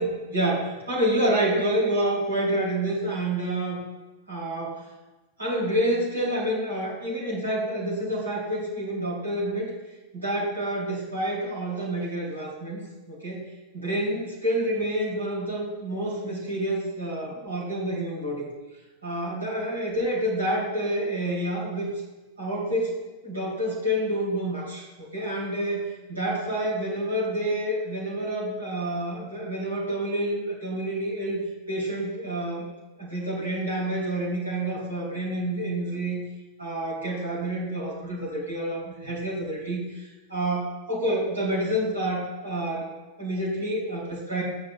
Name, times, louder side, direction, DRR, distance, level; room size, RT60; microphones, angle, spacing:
voice 1, 0.0-3.8 4.3-4.8 5.4-9.7 10.1-12.8 13.1-13.5 13.7-18.5 19.0-21.9 22.4-31.4 31.7-32.7 33.0-36.2 36.6-42.9 43.2-44.4, right 1 dB, 80° right, -7 dB, 2.7 m, -28 dB
13.5 x 8.9 x 2.2 m, 1.1 s
figure-of-eight pair, 90°, 0 cm